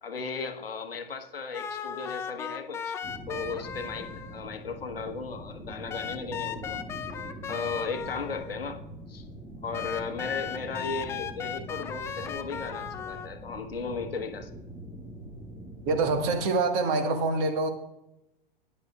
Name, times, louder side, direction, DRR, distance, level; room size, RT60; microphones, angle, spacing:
voice 1, 0.0-3.0 3.3-6.8 7.5-8.8 9.1-9.3 9.6-14.5, left 4 dB, 75° left, 6 dB, 1.2 m, -36 dB
sound 1, 1.5-4.4 5.9-8.6 9.7-13.3, left 8 dB, 10° left, 0.3 m, -37 dB
sound 2, 3.0-16.4, right 1 dB, 10° right, 2.0 m, -43 dB
voice 2, 15.8-17.7, right 3 dB, 40° right, 7 dB, 1.5 m, -25 dB
14.0 x 10.0 x 2.4 m, 0.91 s
figure-of-eight pair, 95°, 29 cm